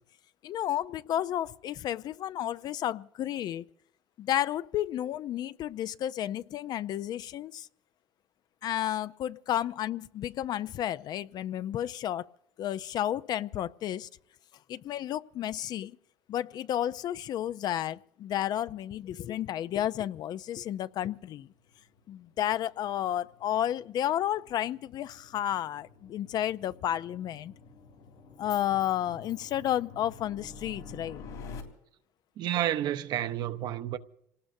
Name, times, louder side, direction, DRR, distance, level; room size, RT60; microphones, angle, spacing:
voice 1, 0.4-3.6 4.2-7.7 8.6-12.3 12.6-14.1 14.7-15.9 16.3-21.5 22.1-27.5 28.4-31.2, left 11 dB, 55° left, 0.5 m, -32 dB
sound 1, 20.5-31.6, left 4 dB, 85° left, 3.4 m, -50 dB
voice 2, 32.4-34.0, right 12 dB, 60° right, 0.9 m, -30 dB
27.0 x 18.5 x 2.7 m
supercardioid pair, 85°, 8 cm